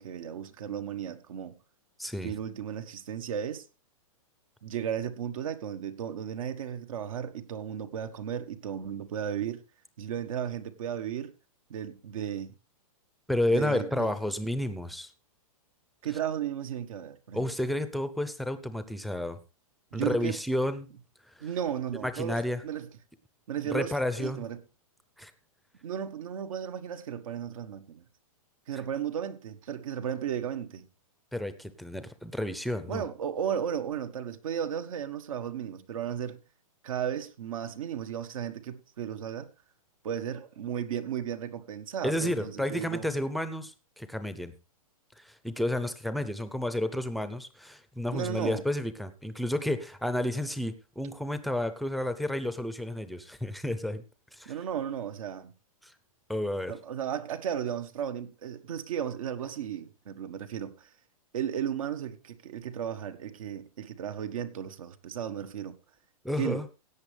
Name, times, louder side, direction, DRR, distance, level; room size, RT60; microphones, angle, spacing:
voice 1, 0.0-1.6 2.2-3.7 4.6-9.6 10.0-11.3 11.7-12.6 13.5-14.1 16.0-17.5 19.9-20.4 21.4-22.9 23.5-24.6 25.8-28.0 28.7-30.9 32.9-36.4 36.8-39.5 40.0-43.0 48.1-48.6 54.4-55.5 56.7-60.9 61.3-65.8 66.4-66.6, right 9 dB, 65° right, 1.5 m, -34 dB
voice 2, 2.0-2.3 13.3-15.1 17.3-19.4 19.9-20.9 21.3-21.5 22.0-22.6 23.7-24.4 25.2-25.3 31.3-33.1 42.0-44.5 45.2-54.0 54.3-54.5 55.8-55.9 56.3-56.7 66.2-66.7, left 1 dB, ahead, 0.7 m, -31 dB
17.0 x 8.3 x 3.4 m
hypercardioid pair, 150°, 18 cm